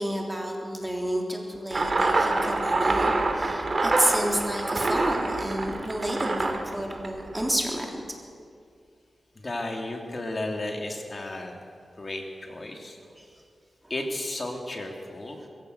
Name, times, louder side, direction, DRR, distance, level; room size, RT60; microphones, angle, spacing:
voice 1, 0.0-7.9 13.2-13.3, right 1 dB, 15° right, 0 dB, 3.5 m, -30 dB
sound 1, 1.7-7.6, right 2 dB, 45° right, 2.8 m, -26 dB
voice 2, 9.4-11.5 12.0-13.0 13.9-15.4, left 2 dB, 35° left, 2 dB, 3.3 m, -33 dB
22.5 x 15.5 x 8.2 m, 2.3 s
wide cardioid pair, 85°, 0 cm